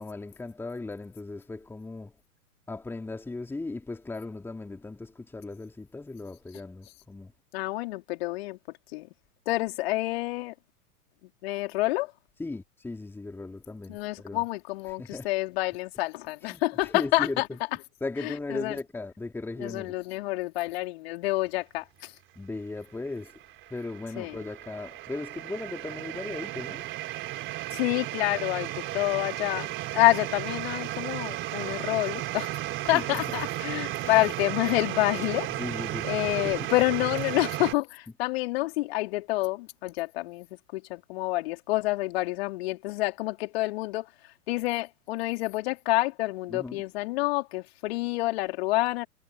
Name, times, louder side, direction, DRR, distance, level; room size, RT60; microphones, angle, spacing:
voice 1, 0.0-2.1 2.7-5.1 5.3-7.3 12.4-14.0 14.2-14.4 15.0-15.3 16.5-16.6 16.9-17.4 18.0-19.9 22.4-23.3 23.7-26.8 32.9-33.0 35.6-36.1 36.3-36.5 46.5-46.8, left 3 dB, 5° left, 2.6 m, -37 dB
voice 2, 7.5-8.6 8.9-9.1 9.5-10.5 11.4-12.1 13.9-17.5 18.2-18.8 19.6-22.1 24.2-24.4 27.7-32.5 32.9-35.5 36.0-40.5 40.7-44.1 44.5-49.1, left 20 dB, 40° left, 3.6 m, -28 dB
sound 1, 23.1-37.7, right 16 dB, 25° right, 3.7 m, -34 dB
figure-of-eight pair, 115°, 46 cm